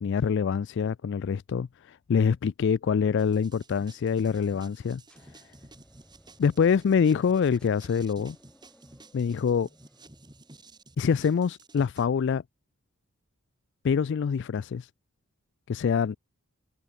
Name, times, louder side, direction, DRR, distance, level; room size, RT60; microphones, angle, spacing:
voice 1, 0.0-5.0 6.4-8.4 9.1-9.7 11.0-12.4 13.8-14.9 15.7-16.2, left 6 dB, 55° left, 0.3 m, -25 dB
sound 1, 3.2-12.1, right 2 dB, 20° right, 4.1 m, -53 dB
sound 2, 5.1-11.0, equal, 5° left, 4.6 m, -60 dB
head